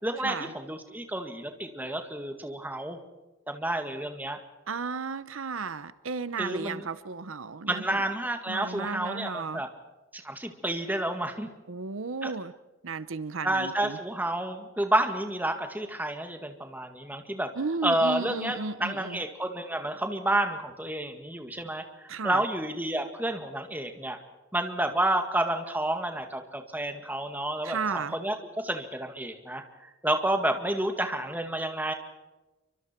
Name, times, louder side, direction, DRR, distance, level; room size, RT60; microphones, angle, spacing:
voice 1, 0.0-3.0 3.5-4.4 6.4-6.8 7.7-9.7 10.1-11.5 12.2-12.3 13.4-17.5 17.8-24.2 24.5-31.9, right 1 dB, 10° right, 5 dB, 2.0 m, -30 dB
voice 2, 4.7-8.0 8.5-9.6 11.7-12.5 12.8-14.0 17.6-19.2 22.1-22.4 27.6-28.2, right 4 dB, 75° right, 15 dB, 0.8 m, -34 dB
28.0 x 24.5 x 4.5 m, 1.1 s
head